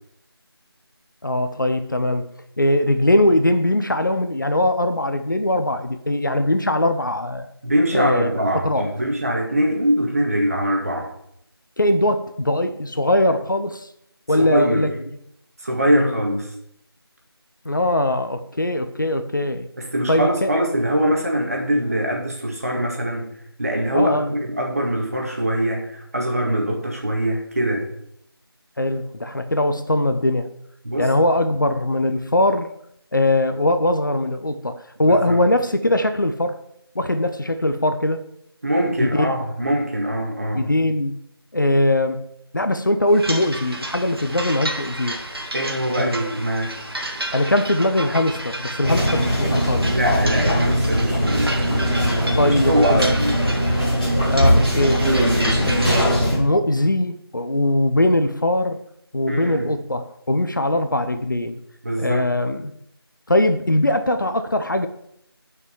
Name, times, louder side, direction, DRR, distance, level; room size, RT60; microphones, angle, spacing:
voice 1, 1.2-2.3 2.6-7.5 7.9-8.3 8.6-8.9 11.8-13.9 14.3-14.9 15.9-16.2 17.6-19.7 20.1-20.5 23.9-24.3 28.8-30.5 31.0-32.7 33.1-36.6 36.9-38.2 39.0-39.4 40.5-41.2 41.5-42.3 42.5-45.2 46.0-46.3 47.3-50.0 52.4-53.2 54.3-55.1 55.7-58.8 59.1-61.6 62.0-62.7 63.3-64.9, left 1 dB, 50° left, 9 dB, 0.8 m, -21 dB
voice 2, 7.6-11.1 14.3-14.9 15.6-16.5 19.8-23.3 23.6-27.9 30.8-31.1 35.0-35.4 38.6-40.7 45.5-46.7 49.8-51.5 52.3-53.4 59.3-59.7 61.8-62.3, equal, 35° right, 0 dB, 2.0 m, -22 dB
sound 1, 43.1-56.0, right 1 dB, 65° right, 2.1 m, -31 dB
sound 2, 48.8-56.4, equal, 20° left, 2.7 m, -20 dB
9.4 x 5.8 x 5.6 m, 0.74 s
figure-of-eight pair, 170°, 13 cm